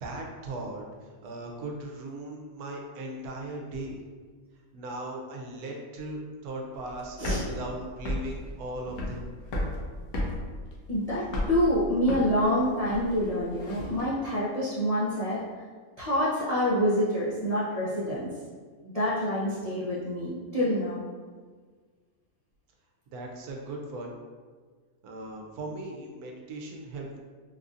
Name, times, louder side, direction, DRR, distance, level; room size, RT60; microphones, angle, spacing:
voice 1, 0.0-4.0 4.7-9.3 23.1-24.1 25.0-27.2, right 2 dB, 80° right, 1 dB, 1.1 m, -38 dB
sound 1, 6.7-14.0, left 1 dB, 85° left, 1.1 m, -34 dB
voice 2, 10.9-15.4 16.0-18.3 18.8-21.0, equal, 50° left, -10 dB, 0.4 m, -27 dB
4.0 x 2.6 x 2.4 m, 1.5 s
omnidirectional pair, 1.6 m